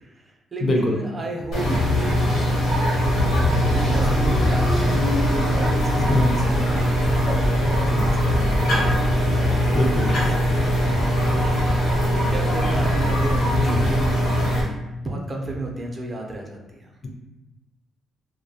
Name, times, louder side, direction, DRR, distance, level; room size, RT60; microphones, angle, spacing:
voice 1, 0.0-2.3 3.7-14.6 15.0-16.9, right 2 dB, 35° right, 1 dB, 0.4 m, -33 dB
voice 2, 0.6-1.0 6.1-6.4 9.7-10.1 13.6-13.8, left 1 dB, 40° left, 1 dB, 0.5 m, -23 dB
sound 1, 1.5-14.6, equal, 75° left, 0.8 m, -21 dB
sound 2, 3.0-14.1, right 1 dB, 85° right, 0.6 m, -29 dB
2.3 x 2.1 x 2.7 m, 1.0 s
cardioid pair, 90°, 0 cm